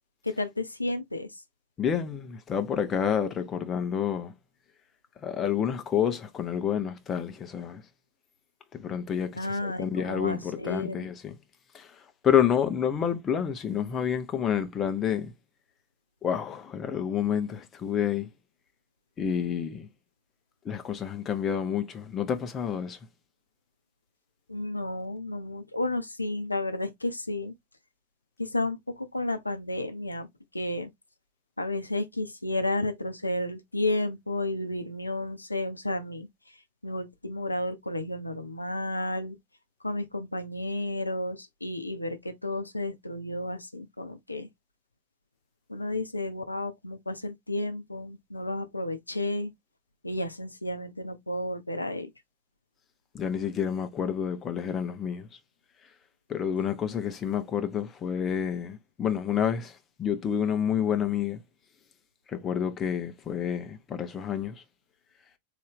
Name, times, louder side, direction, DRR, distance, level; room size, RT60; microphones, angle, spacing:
voice 1, 0.2-1.3 9.3-11.1 24.5-27.5 28.4-30.3 30.5-30.9 31.6-36.3 36.8-39.4 39.8-44.5 45.7-49.5 50.0-52.1, left 2 dB, 85° left, 0.5 m, -32 dB
voice 2, 1.8-4.3 5.2-7.8 8.7-11.4 11.7-11.9 12.2-15.3 16.2-18.3 19.2-19.9 20.6-23.0 53.1-55.3 56.3-61.4 62.3-64.6, left 8 dB, 25° left, 0.7 m, -29 dB
3.9 x 2.7 x 3.4 m
figure-of-eight pair, 90°, 0 cm